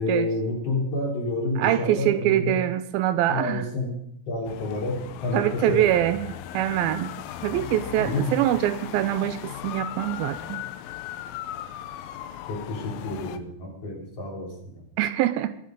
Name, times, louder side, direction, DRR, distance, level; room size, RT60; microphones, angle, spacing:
voice 1, 0.0-2.6 3.3-4.0 4.3-5.9 8.0-8.3 12.5-14.8, left 2 dB, 40° left, -1 dB, 4.2 m, -29 dB
voice 2, 1.6-3.7 5.3-7.1 7.4-10.6 15.0-15.6, right 13 dB, 80° right, 13 dB, 2.4 m, -24 dB
sound 1, 4.4-13.4, left 11 dB, 80° left, 2.4 m, -37 dB
21.5 x 7.9 x 5.2 m, 0.74 s
omnidirectional pair, 4.4 m